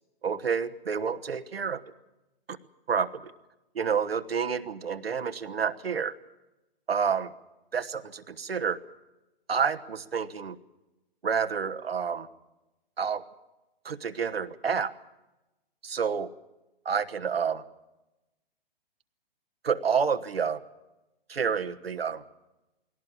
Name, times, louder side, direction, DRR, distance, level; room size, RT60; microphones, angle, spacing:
voice 1, 0.2-1.8 2.9-3.3 3.7-6.1 6.9-7.3 7.7-8.8 9.5-10.6 11.2-12.3 13.0-13.2 13.8-14.9 15.8-16.3 16.8-17.6 19.6-20.6 21.3-22.2, right 6 dB, 85° right, 10 dB, 1.3 m, -29 dB
20.0 x 17.5 x 8.7 m, 1.0 s
figure-of-eight pair, 125°, 30 cm